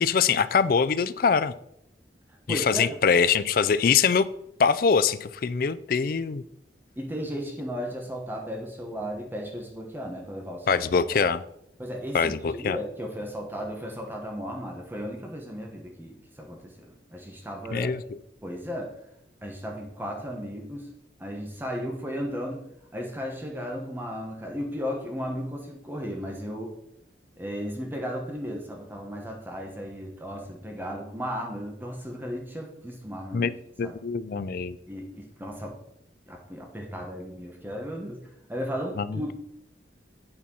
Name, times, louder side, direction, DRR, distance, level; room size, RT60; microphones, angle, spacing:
voice 1, 0.0-1.5 2.5-4.3 4.6-6.4 10.7-11.4 12.1-12.8 17.7-18.0 33.3-33.5 33.8-34.8 39.0-39.3, left 6 dB, 50° left, 15 dB, 0.4 m, -23 dB
voice 2, 2.5-3.0 7.0-10.8 11.2-11.3 11.8-17.9 18.4-18.9 19.4-20.9 21.2-26.8 27.4-33.5 33.8-34.0 34.9-35.8 36.3-39.3, equal, 10° right, 1 dB, 1.1 m, -35 dB
8.7 x 4.3 x 5.4 m, 0.76 s
head